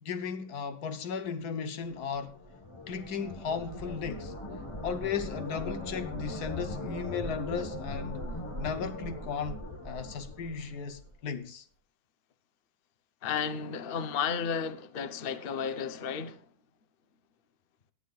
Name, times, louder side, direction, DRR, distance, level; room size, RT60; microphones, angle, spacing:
voice 1, 0.0-2.3 2.9-4.3 4.8-8.3 8.6-11.6, left 6 dB, 75° left, 1.4 m, -35 dB
sound 1, 1.9-11.2, left 1 dB, 20° left, 1.1 m, -39 dB
voice 2, 13.2-16.4, left 7 dB, 45° left, 0.9 m, -33 dB
18.0 x 11.5 x 2.4 m
omnidirectional pair, 1.7 m